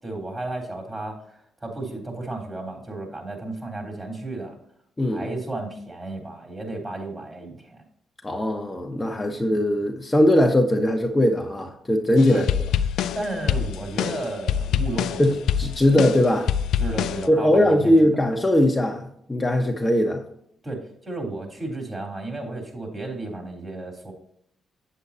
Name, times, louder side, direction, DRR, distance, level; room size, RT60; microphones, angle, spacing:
voice 1, 0.0-4.6 5.0-7.8 12.3-12.5 13.1-15.4 16.8-18.1 20.6-24.1, right 2 dB, 25° right, 2 dB, 3.5 m, -33 dB
voice 2, 8.2-12.5 15.2-16.5 17.3-20.2, left 1 dB, 20° left, 2 dB, 1.2 m, -20 dB
sound 1, 12.2-17.3, left 9 dB, 75° left, 0.4 m, -25 dB
8.1 x 7.8 x 2.8 m, 0.69 s
supercardioid pair, 55°, 0 cm